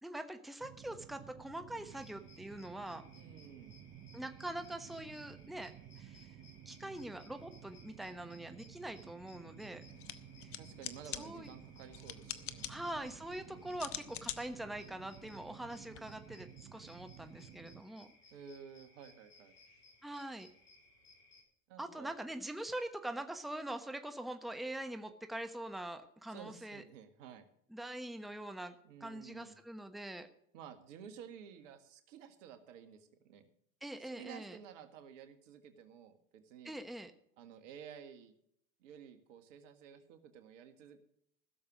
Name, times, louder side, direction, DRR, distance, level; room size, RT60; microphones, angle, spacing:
voice 1, 0.0-3.1 4.1-6.3 6.6-9.8 10.4-10.5 11.2-11.5 12.7-16.5 16.7-18.1 20.0-20.5 21.8-26.8 27.7-30.3 33.8-34.6 36.6-37.1, right 1 dB, ahead, 7 dB, 1.2 m, -43 dB
sound 1, 0.6-17.8, right 10 dB, 35° right, 0.8 m, -55 dB
sound 2, 1.9-21.4, left 3 dB, 40° left, 5.8 m, -63 dB
voice 2, 3.1-3.8 10.6-12.8 18.3-19.5 21.7-22.1 26.3-27.5 28.8-29.6 30.5-33.5 34.0-36.7 37.4-38.3 38.8-41.0, right 8 dB, 70° right, 9 dB, 1.9 m, -53 dB
sound 3, 9.9-16.0, left 12 dB, 70° left, 1.0 m, -47 dB
16.0 x 7.0 x 6.2 m, 0.68 s
hypercardioid pair, 85°, 39 cm